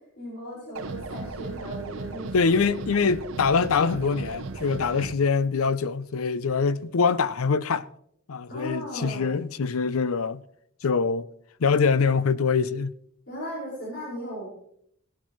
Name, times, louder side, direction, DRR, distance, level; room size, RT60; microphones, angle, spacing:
voice 1, 0.2-2.6 8.5-9.3 13.3-14.5, equal, 55° left, 5.1 m, -37 dB
sound 1, 0.8-5.1, right 3 dB, 80° right, 0.8 m, -36 dB
voice 2, 2.3-7.9 8.3-10.4 10.8-11.3 11.6-12.9, left 5 dB, 90° left, 0.5 m, -24 dB
19.0 x 12.0 x 3.1 m
head